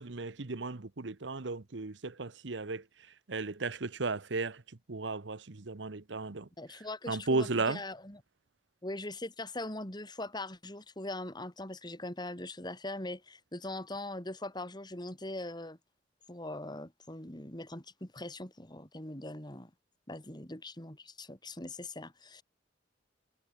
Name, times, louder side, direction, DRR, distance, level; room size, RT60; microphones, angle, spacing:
voice 1, 0.0-2.8 3.3-4.6 4.9-6.5 7.1-7.8, right 3 dB, 75° right, 1.0 m, -34 dB
voice 2, 6.6-8.2 8.8-15.8 16.3-19.7 20.1-22.4, left 2 dB, 25° left, 3.9 m, -41 dB
head